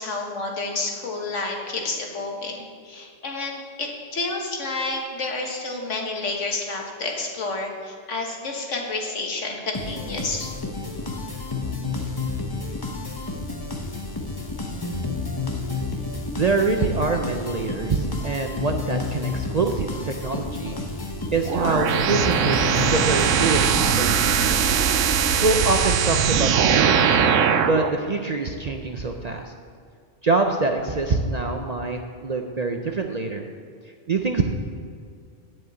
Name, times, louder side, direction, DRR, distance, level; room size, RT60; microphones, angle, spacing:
voice 1, 0.0-10.5, left 3 dB, 70° left, 1 dB, 1.7 m, -30 dB
sound 1, 9.7-24.3, left 3 dB, 20° left, 0.9 m, -31 dB
voice 2, 16.3-20.8 21.3-24.6 25.2-27.2 27.6-29.5 30.2-33.5 34.1-34.4, right 3 dB, 45° right, 4 dB, 0.5 m, -25 dB
sound 2, 21.5-27.9, right 7 dB, 80° right, 1.0 m, -20 dB
7.6 x 7.6 x 8.3 m, 2.2 s
omnidirectional pair, 1.3 m